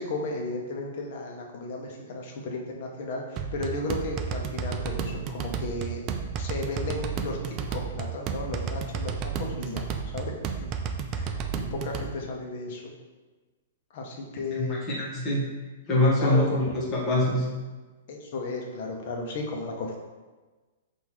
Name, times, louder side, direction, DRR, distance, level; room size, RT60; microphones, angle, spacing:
voice 1, 0.0-6.0 6.4-10.3 10.6-10.7 11.1-11.4 11.7-12.9 13.9-14.8 16.2-16.8 18.1-20.0, left 2 dB, 50° left, 1 dB, 0.8 m, -34 dB
sound 1, 3.4-12.1, right 6 dB, 30° right, 0.3 m, -32 dB
voice 2, 14.6-15.5 15.9-16.6 16.9-17.5, left 1 dB, 25° left, -4 dB, 1.2 m, -24 dB
5.6 x 2.6 x 3.1 m, 1.3 s
hypercardioid pair, 155°, 0 cm